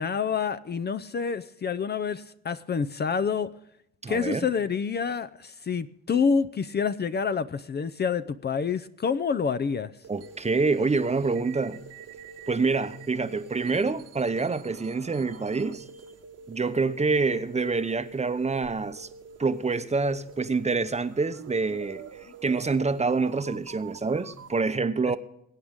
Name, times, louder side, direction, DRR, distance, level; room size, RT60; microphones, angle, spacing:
voice 1, 0.0-3.5 4.1-9.9 25.1-25.2, left 6 dB, 35° left, 0.6 m, -27 dB
voice 2, 4.0-4.5 10.1-11.8 12.5-15.8 16.5-19.1 19.4-25.2, right 4 dB, 20° right, 0.8 m, -26 dB
sound 1, 10.0-24.6, right 7 dB, 55° right, 1.2 m, -47 dB
21.0 x 8.7 x 3.6 m
cardioid pair, 90°, 30 cm